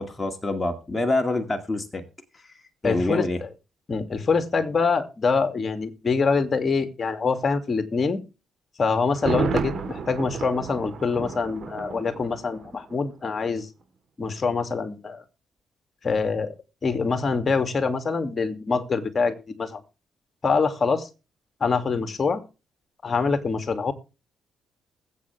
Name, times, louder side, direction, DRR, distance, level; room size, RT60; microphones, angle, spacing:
voice 1, 0.0-2.0 2.8-3.4, left 2 dB, 20° left, 2.2 m, -26 dB
voice 2, 2.8-3.5 3.9-8.2 8.8-13.7 14.2-15.2 16.0-16.5 16.8-19.8 20.4-21.1 21.6-22.4 23.0-23.9, left 4 dB, 40° left, 2.5 m, -25 dB
Thunder, 9.1-13.0 13.3-13.4, right 6 dB, 55° right, 3.5 m, -31 dB
21.0 x 8.3 x 3.4 m
supercardioid pair, 65°, 0 cm